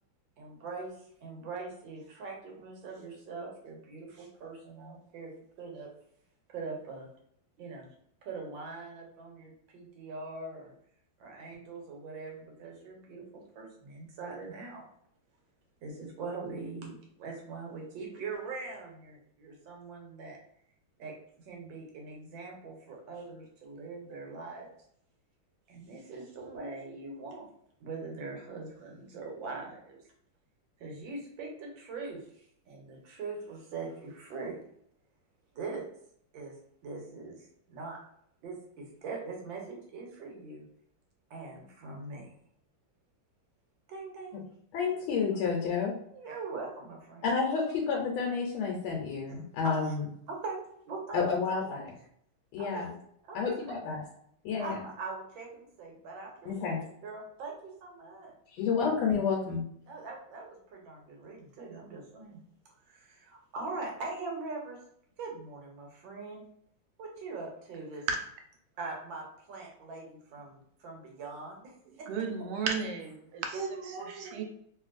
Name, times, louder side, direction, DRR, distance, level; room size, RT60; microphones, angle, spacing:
voice 1, 0.4-5.3 5.6-5.9 6.5-7.1 7.6-7.9 8.2-10.7 11.2-14.8 15.8-20.4 21.0-21.1 21.5-24.7 25.7-27.5 27.8-30.0 30.8-34.6 35.5-35.8 36.3-36.5 36.8-38.0 38.4-40.6 41.3-42.3 43.9-44.5 46.1-47.3 49.6-50.0 50.3-50.6 50.9-51.9 52.6-52.9 53.3-53.8 54.6-58.3 59.9-62.4 62.9-64.8 65.2-66.4 67.0-68.0 68.8-71.7 72.0-72.1 73.5-74.4, right 3 dB, 70° right, 0 dB, 1.5 m, -42 dB
voice 2, 44.7-45.9 47.2-50.0 51.1-51.9 52.5-52.9 53.3-54.0 54.4-54.8 56.5-56.8 58.5-59.6, left 5 dB, 85° left, -1 dB, 1.5 m, -30 dB
voice 3, 72.1-73.6 74.1-74.4, right 5 dB, 90° right, 4 dB, 1.5 m, -33 dB
3.0 x 2.9 x 2.4 m, 0.68 s
omnidirectional pair, 2.3 m